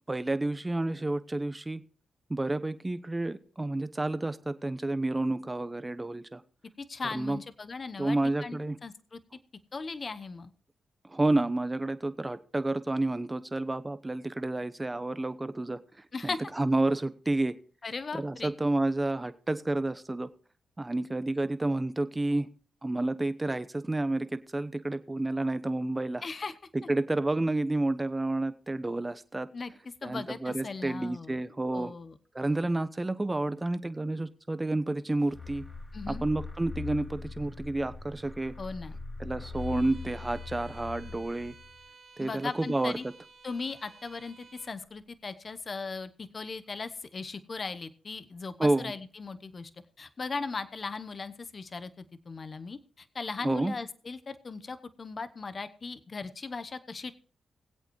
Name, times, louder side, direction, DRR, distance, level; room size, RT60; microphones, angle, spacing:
voice 1, 0.1-1.8 2.3-6.4 7.1-7.4 8.0-8.8 11.1-15.8 16.2-17.5 18.1-20.3 20.8-22.5 22.8-26.2 26.9-29.5 30.0-31.9 32.3-35.6 36.1-38.5 39.2-41.5 42.2-43.0 48.6-48.9 53.4-53.7, right 2 dB, 20° right, 12 dB, 1.0 m, -30 dB
voice 2, 6.8-9.2 9.7-10.5 16.1-16.4 17.8-18.5 26.2-26.5 29.5-31.4 31.7-32.2 35.9-36.2 38.6-38.9 42.2-43.1 43.4-49.7 50.0-57.1, left 4 dB, 45° left, 11 dB, 1.0 m, -38 dB
sound 1, 35.3-41.8, left 4 dB, 15° left, 2.6 m, -41 dB
Bowed string instrument, 39.5-44.8, right 4 dB, 60° right, 2.7 m, -54 dB
21.0 x 8.2 x 3.2 m, 0.41 s
supercardioid pair, 55°, 0 cm